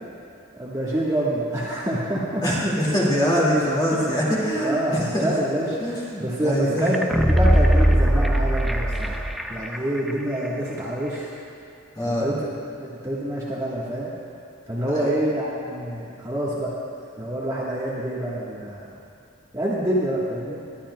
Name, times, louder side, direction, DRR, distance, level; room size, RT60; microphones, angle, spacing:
voice 1, 0.5-2.4 3.9-4.1 4.6-9.2 9.5-11.3 12.0-14.1 14.7-16.8 17.2-18.8 19.5-20.6, right 1 dB, 15° right, -7 dB, 1.3 m, -27 dB
voice 2, 2.4-5.3 5.8-6.9 12.0-12.4 14.9-15.1, equal, 20° left, -5 dB, 2.0 m, -23 dB
sound 1, 6.9-9.8 10.1-10.2, equal, ahead, 0.3 m, -19 dB
20.0 x 11.5 x 2.2 m, 2.5 s
head